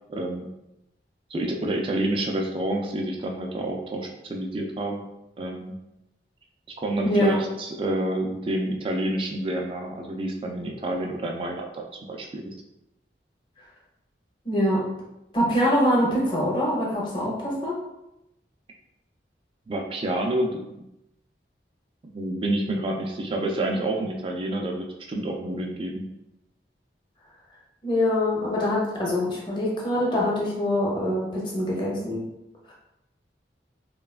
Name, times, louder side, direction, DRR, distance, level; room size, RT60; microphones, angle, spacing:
voice 1, 0.1-0.5 1.3-5.0 5.4-5.7 6.8-12.5 19.7-20.6 22.1-26.1, right 1 dB, 30° right, 2 dB, 0.3 m, -28 dB
voice 2, 7.0-7.4 14.4-14.8 15.3-17.8 27.8-32.2 32.7-32.8, left 1 dB, 25° left, -4 dB, 0.6 m, -24 dB
3.1 x 2.2 x 2.3 m, 0.88 s
head